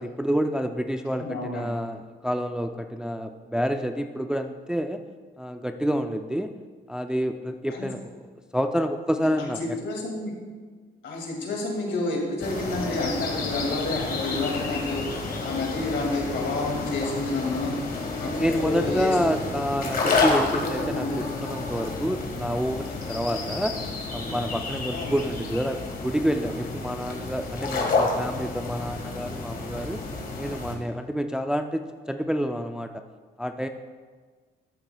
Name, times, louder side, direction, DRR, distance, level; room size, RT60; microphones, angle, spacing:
voice 1, 0.0-5.0 5.4-6.5 6.9-8.0 8.5-9.6 18.4-23.8 24.1-30.0 30.4-33.0 33.4-33.7, equal, 5° right, 6 dB, 0.3 m, -28 dB
voice 2, 1.2-1.7 7.7-7.9 9.2-10.3 11.0-17.8 18.2-19.5 20.2-20.3 20.6-21.2 24.9-25.2, left 2 dB, 65° left, -1 dB, 2.2 m, -30 dB
sound 1, 12.4-30.7, left 3 dB, 45° left, 1.6 m, -30 dB
13.0 x 7.2 x 2.3 m, 1.5 s
cardioid pair, 90°, 20 cm